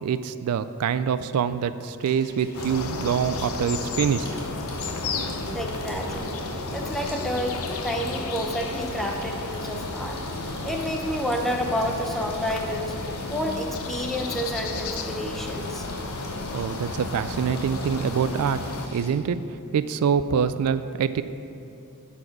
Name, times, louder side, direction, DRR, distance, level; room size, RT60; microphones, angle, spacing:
voice 1, 0.0-4.3 16.5-18.6 18.9-19.4 19.7-21.2, right 7 dB, 80° right, 13 dB, 0.3 m, -25 dB
Water tap faucet / Sink (filling or washing), 2.0-19.1, left 1 dB, 45° left, 1.9 m, -42 dB
sound 1, 2.5-18.9, left 3 dB, 65° left, 0.7 m, -33 dB
sound 2, 3.6-8.1, equal, 85° left, 1.7 m, -44 dB
voice 2, 5.5-6.4 6.7-10.2 10.6-12.9 13.3-15.9, equal, ahead, 2 dB, 0.7 m, -30 dB
11.5 x 4.3 x 6.0 m, 2.7 s
head